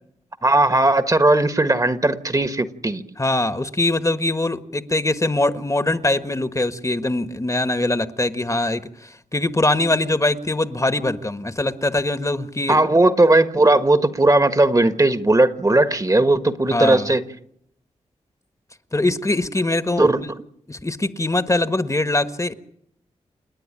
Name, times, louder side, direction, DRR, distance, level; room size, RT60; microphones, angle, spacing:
voice 1, 0.4-3.0 12.7-17.2 20.0-20.2, right 2 dB, 25° right, 10 dB, 1.5 m, -17 dB
voice 2, 3.2-12.8 16.7-17.1 18.9-20.3 20.7-22.5, left 2 dB, 25° left, 11 dB, 1.4 m, -22 dB
29.0 x 9.7 x 10.0 m, 0.73 s
cardioid pair, 45°, 13 cm